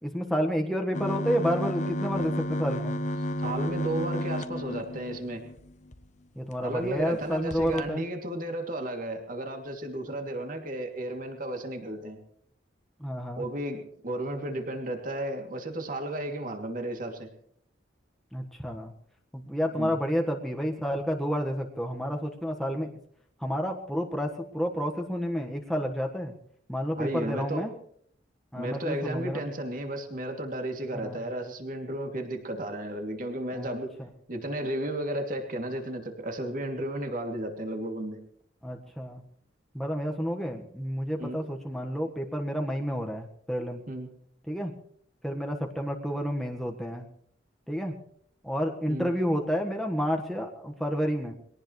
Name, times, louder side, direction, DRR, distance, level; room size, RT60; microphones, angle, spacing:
voice 1, 0.0-3.0 6.3-8.0 10.1-10.2 13.0-13.5 18.3-18.9 19.3-22.9 23.4-26.3 26.7-27.7 28.5-29.4 30.9-31.2 33.5-34.1 38.6-39.2 39.7-43.8 44.5-44.7 45.2-47.1 47.7-48.0 48.4-51.3, equal, ahead, 1 dB, 1.5 m, -30 dB
sound 1, 0.9-6.0 6.5-6.6 6.9-7.1 7.5-7.8, equal, 40° left, 1.0 m, -32 dB
voice 2, 3.4-5.4 6.6-12.2 13.4-17.3 19.7-20.0 27.0-27.6 28.5-33.9 34.3-38.2 41.2-41.4 43.9-44.1 48.9-49.1, right 1 dB, 45° right, 3 dB, 2.8 m, -33 dB
22.5 x 18.0 x 3.3 m, 0.66 s
head